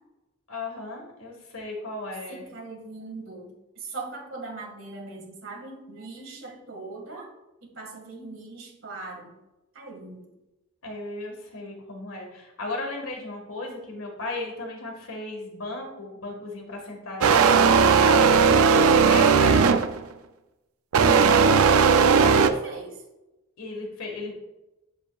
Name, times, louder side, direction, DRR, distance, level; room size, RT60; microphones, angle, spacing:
voice 1, 0.5-2.4 10.8-18.3 18.7-19.8 22.0-22.6 23.6-24.4, left 2 dB, 85° left, 1 dB, 1.8 m, -35 dB
voice 2, 2.3-7.3 7.6-9.3 9.7-10.3 22.2-23.0, right 3 dB, 65° right, 0 dB, 2.0 m, -40 dB
sound 1, 17.2-20.0 20.9-22.5, right 5 dB, 85° right, 0.5 m, -17 dB
7.8 x 7.2 x 2.4 m, 0.98 s
head